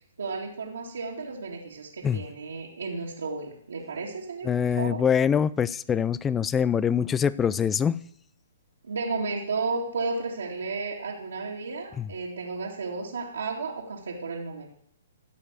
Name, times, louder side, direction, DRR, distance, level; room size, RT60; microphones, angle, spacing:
voice 1, 0.2-4.5 4.8-5.0 8.8-14.7, right 4 dB, 80° right, 2.4 m, -33 dB
voice 2, 4.4-8.0 12.0-12.1, left 7 dB, 15° left, 0.4 m, -24 dB
15.0 x 5.3 x 8.2 m
hypercardioid pair, 130°, 0 cm